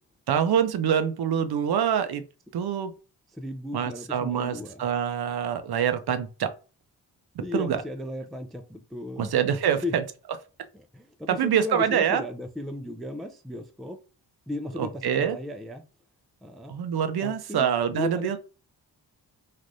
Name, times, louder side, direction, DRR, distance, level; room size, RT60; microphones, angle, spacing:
voice 1, 0.3-2.2 2.5-2.9 3.7-6.5 7.5-7.8 9.2-10.0 11.3-12.2 14.8-15.4 16.7-18.4, right 8 dB, 60° right, 0.5 m, -25 dB
voice 2, 3.3-4.8 7.4-9.3 9.7-10.0 10.7-14.0 14.5-15.8 16.4-16.7 17.2-18.4, left 2 dB, ahead, 0.3 m, -35 dB
3.3 x 2.4 x 2.6 m
cardioid pair, 50°, 44 cm